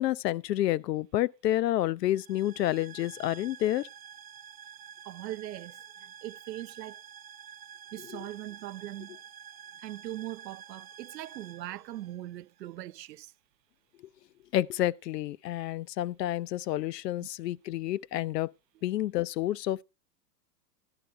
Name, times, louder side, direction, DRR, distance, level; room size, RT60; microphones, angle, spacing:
voice 1, 0.0-3.9 14.5-18.5 18.8-19.8, left 14 dB, 75° left, 0.6 m, -29 dB
sound 1, 2.1-12.7, right 8 dB, 20° right, 0.5 m, -49 dB
voice 2, 5.1-5.8 6.2-7.0 7.9-9.2 9.8-13.3 17.2-17.3, right 14 dB, 85° right, 0.6 m, -40 dB
11.5 x 11.0 x 3.3 m
hypercardioid pair, 110°, 49 cm